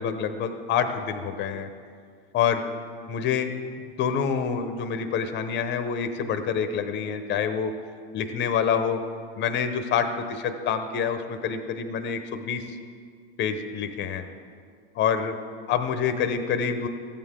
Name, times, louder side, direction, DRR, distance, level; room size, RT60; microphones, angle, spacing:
voice 1, 0.0-1.7 2.3-2.7 3.1-3.5 4.0-7.7 8.1-9.0 9.4-12.8 13.4-14.2 15.0-15.4 15.7-16.9, left 7 dB, 35° left, 8 dB, 0.9 m, -27 dB
14.5 x 8.7 x 3.7 m, 2.1 s
hypercardioid pair, 105°, 30 cm